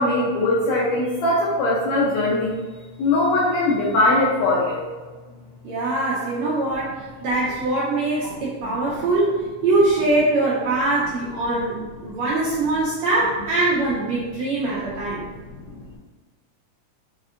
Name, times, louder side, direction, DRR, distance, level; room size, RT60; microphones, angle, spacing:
voice 1, 0.0-2.6 3.0-4.8 8.6-8.7 15.7-15.8, left 2 dB, 80° left, -6 dB, 1.6 m, -21 dB
voice 2, 5.6-15.2, right 2 dB, 75° right, -6 dB, 1.6 m, -22 dB
5.2 x 3.5 x 2.4 m, 1.3 s
omnidirectional pair, 3.8 m